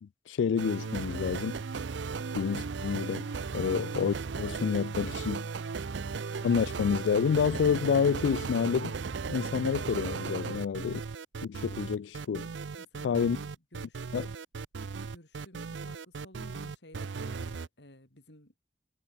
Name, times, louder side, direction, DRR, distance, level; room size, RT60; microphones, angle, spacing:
voice 1, 0.0-1.6 2.3-3.3 3.5-5.5 6.4-9.0 9.3-11.0 11.4-12.5 13.0-13.4 14.1-14.3, left 6 dB, 90° left, 0.3 m, -29 dB
sound 1, 0.6-17.7, right 5 dB, 85° right, 0.6 m, -36 dB
voice 2, 10.4-10.7 12.8-14.4 15.1-18.6, left 1 dB, 65° left, 5.3 m, -55 dB
head